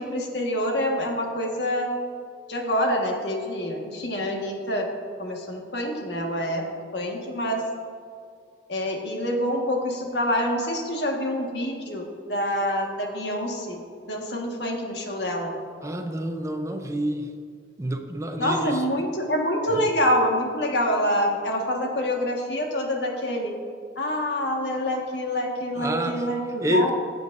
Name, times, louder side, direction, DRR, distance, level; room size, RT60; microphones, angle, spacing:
voice 1, 0.0-1.9 2.5-4.9 5.2-6.6 6.9-7.6 8.7-13.8 14.1-15.5 18.4-23.5 24.0-26.9, equal, 75° left, 0 dB, 1.6 m, -26 dB
voice 2, 15.8-17.3 17.8-19.1 19.7-19.8 25.7-26.3 26.6-26.9, equal, 15° right, 5 dB, 0.6 m, -28 dB
16.0 x 7.7 x 2.6 m, 2.2 s
head